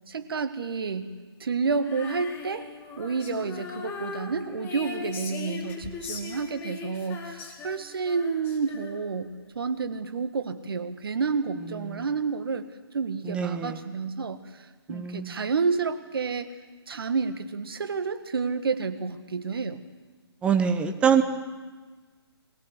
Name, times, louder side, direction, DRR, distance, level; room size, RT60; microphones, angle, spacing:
voice 1, 0.1-1.1 1.4-2.7 3.0-12.6 12.9-16.5 16.9-19.8, right 5 dB, 60° right, 9 dB, 1.7 m, -30 dB
Female singing, 1.8-9.3, left 5 dB, 15° left, 2.1 m, -39 dB
voice 2, 13.2-13.8 14.9-15.3 20.4-21.2, right 7 dB, 10° right, 8 dB, 0.9 m, -24 dB
22.5 x 17.5 x 8.2 m, 1.4 s
figure-of-eight pair, 145°, 14 cm